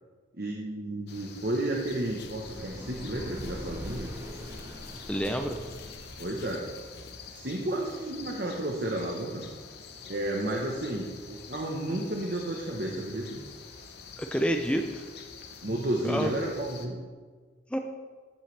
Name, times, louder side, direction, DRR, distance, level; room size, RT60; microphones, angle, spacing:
voice 1, 0.3-4.1 6.2-6.7 7.3-9.5 10.0-13.4 15.6-17.0, right 1 dB, 50° right, 0 dB, 1.0 m, -32 dB
Rural Vermont Morning, 1.1-16.9, left 5 dB, 55° left, 0.9 m, -47 dB
sound 1, 1.8-6.5, left 1 dB, 20° right, 3.2 m, -42 dB
voice 2, 5.1-5.6 14.2-15.0 16.0-16.3 17.7-17.8, equal, 5° left, 5 dB, 0.5 m, -28 dB
13.0 x 8.0 x 3.3 m, 1.5 s
head